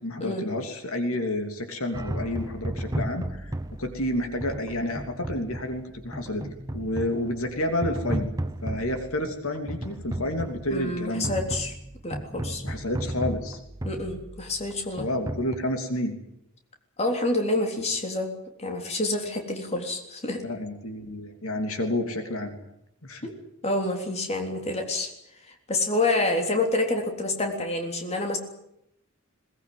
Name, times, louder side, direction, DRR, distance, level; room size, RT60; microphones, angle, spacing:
voice 1, 0.0-6.4 6.7-8.3 8.6-11.3 12.6-13.6 15.0-16.2 20.4-22.6 23.0-23.3, left 1 dB, 70° left, 5 dB, 3.1 m, -30 dB
sound 1, 1.9-15.6, right 1 dB, 15° right, 0.9 m, -35 dB
voice 2, 10.7-11.7 12.0-12.6 13.8-15.1 17.0-18.3 18.6-20.4 23.2-23.3 23.6-25.1 25.5-28.4, left 2 dB, 30° left, 3 dB, 3.6 m, -28 dB
21.5 x 20.0 x 9.5 m, 0.81 s
head